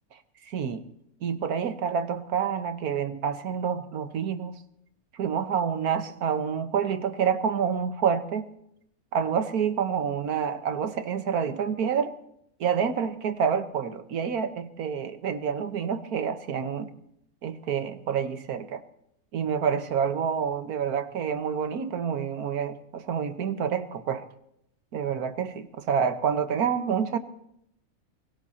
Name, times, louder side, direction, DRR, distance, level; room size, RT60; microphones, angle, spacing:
voice 1, 0.5-0.8 1.2-4.6 5.2-8.5 9.1-12.1 12.6-16.9 17.4-18.8 19.3-24.2 24.9-27.2, right 7 dB, 90° right, 10 dB, 1.6 m, -28 dB
24.0 x 17.0 x 2.8 m, 0.76 s
omnidirectional pair, 1.5 m